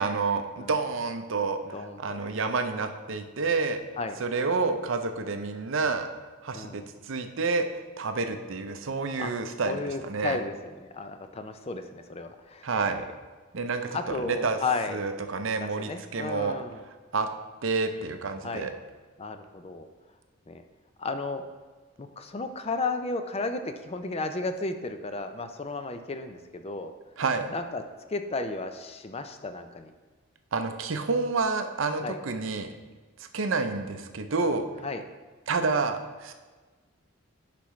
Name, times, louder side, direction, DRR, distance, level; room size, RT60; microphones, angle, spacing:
voice 1, 0.0-3.8 4.2-6.1 6.4-10.4 12.6-13.0 13.5-14.6 14.9-16.6 17.1-17.3 17.6-18.7 27.2-27.5 30.5-32.7 33.3-34.7 35.5-36.3, right 4 dB, 65° right, 7 dB, 0.6 m, -29 dB
voice 2, 1.7-2.4 4.0-4.2 6.5-6.8 9.2-9.3 9.6-12.7 13.9-15.0 15.6-16.8 18.4-18.7 19.2-19.9 20.5-20.6 21.0-21.4 22.0-26.9 27.5-27.8 28.1-29.9 32.0-32.2 34.8-35.0, left 3 dB, 30° left, 8 dB, 0.5 m, -33 dB
10.0 x 5.9 x 3.2 m, 1.3 s
head